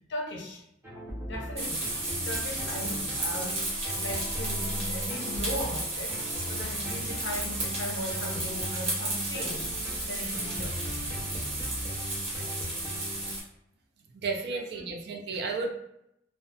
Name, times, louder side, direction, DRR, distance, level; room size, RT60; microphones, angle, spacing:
voice 1, 0.1-0.6 1.3-6.2 6.5-9.7 10.1-11.0 14.5-14.9, left 1 dB, 70° left, 0.6 m, -38 dB
sound 1, 0.8-13.3, equal, 15° right, 0.7 m, -39 dB
sound 2, 1.6-13.4, right 2 dB, 35° right, 0.9 m, -33 dB
voice 2, 14.1-15.7, right 4 dB, 60° right, 0.4 m, -32 dB
2.6 x 2.1 x 2.3 m
head